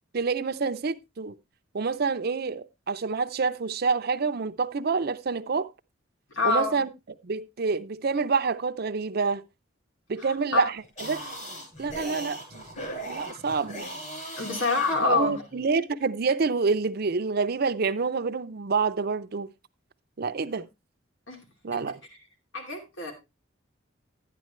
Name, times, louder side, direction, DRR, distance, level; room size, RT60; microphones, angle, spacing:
voice 1, 0.1-1.3 1.7-5.7 6.4-6.9 7.2-9.4 10.1-11.2 11.8-12.6 13.1-13.9 15.0-19.5 20.2-20.7 21.6-22.0, right 4 dB, 50° right, 0.6 m, -27 dB
voice 2, 6.3-6.8 10.2-10.3 10.5-10.7 14.4-15.3 21.3-21.4 22.5-23.1, left 4 dB, 75° left, 2.7 m, -26 dB
sound 1, 10.8-15.6, right 1 dB, 45° left, 6.8 m, -38 dB
11.5 x 9.3 x 3.1 m
head